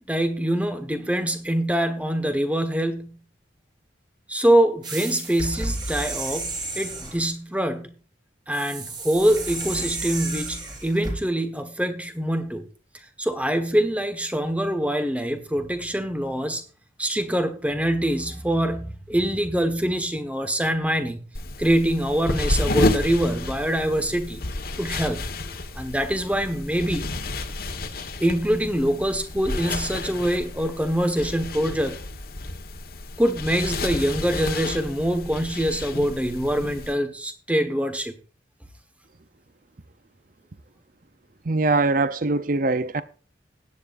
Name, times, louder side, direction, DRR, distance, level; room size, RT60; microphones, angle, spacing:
voice 1, 0.1-3.2 4.3-7.9 8.5-12.6 13.2-16.6 17.0-21.2 21.6-24.4 24.8-25.2 25.7-27.1 28.2-32.0 33.2-38.1, right 1 dB, 5° right, 1.3 m, -24 dB
sound 1, 4.8-7.2 8.5-11.2, right 2 dB, 20° right, 4.4 m, -32 dB
sound 2, 21.3-36.9, left 2 dB, 50° left, 1.4 m, -31 dB
voice 2, 41.5-43.0, right 3 dB, 45° right, 0.6 m, -22 dB
16.5 x 10.0 x 2.6 m
head